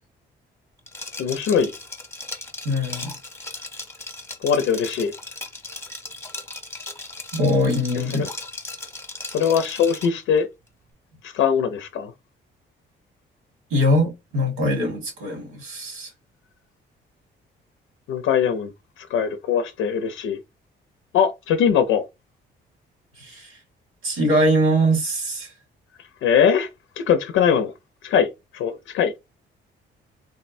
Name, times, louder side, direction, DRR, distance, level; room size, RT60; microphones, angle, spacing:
Liquid, 0.9-10.2, left 2 dB, 15° left, 0.8 m, -37 dB
voice 1, 1.2-1.7 4.4-5.1 8.2-8.3 9.3-10.5 11.2-12.1 18.1-18.7 19.0-20.4 21.1-22.1 26.2-26.7 27.0-27.7 28.0-29.1, left 7 dB, 80° left, 0.5 m, -21 dB
voice 2, 2.6-3.1 7.3-8.2 13.7-16.1 23.2-23.6 24.0-25.5, equal, 90° right, 1.5 m, -22 dB
3.6 x 2.1 x 2.5 m
cardioid pair, 90°, 20 cm